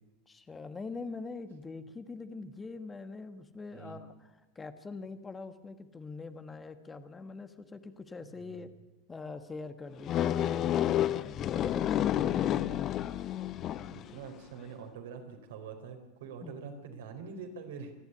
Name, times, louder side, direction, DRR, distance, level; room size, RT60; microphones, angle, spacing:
voice 1, 0.3-4.1 4.5-8.7 9.1-12.7 16.4-16.5, left 3 dB, 20° left, 9 dB, 1.6 m, -43 dB
voice 2, 8.2-8.7 10.5-10.7 13.7-17.9, right 6 dB, 65° right, 5 dB, 3.9 m, -45 dB
sound 1, 10.1-14.1, left 11 dB, 40° left, 0.8 m, -30 dB
26.5 x 11.5 x 9.9 m, 1.0 s
figure-of-eight pair, 85°, 0 cm